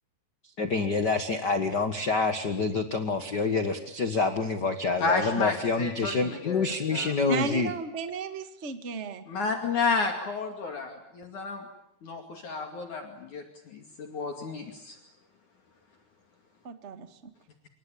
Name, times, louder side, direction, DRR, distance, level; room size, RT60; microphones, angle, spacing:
voice 1, 0.6-7.7, left 4 dB, 80° left, 8 dB, 0.9 m, -27 dB
voice 2, 5.0-6.7 6.9-7.2 9.3-11.7 12.0-15.0, left 4 dB, 55° left, 4 dB, 3.7 m, -31 dB
voice 3, 7.3-9.2 16.6-17.2, right 4 dB, 35° right, 9 dB, 1.1 m, -34 dB
28.0 x 24.5 x 8.6 m, 0.73 s
omnidirectional pair, 4.5 m